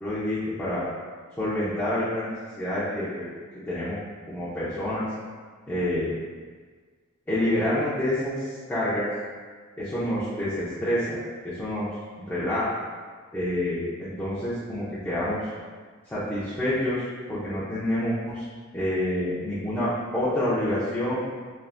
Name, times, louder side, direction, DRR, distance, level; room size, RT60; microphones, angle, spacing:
voice 1, 0.0-0.8 1.4-3.3 3.7-4.0 4.3-5.1 5.7-6.1 7.3-9.1 9.8-11.2 11.4-11.9 12.3-12.7 13.3-15.5 16.1-18.4 18.7-21.2, left 1 dB, 10° left, -12 dB, 0.5 m, -27 dB
3.2 x 2.4 x 2.4 m, 1.5 s
head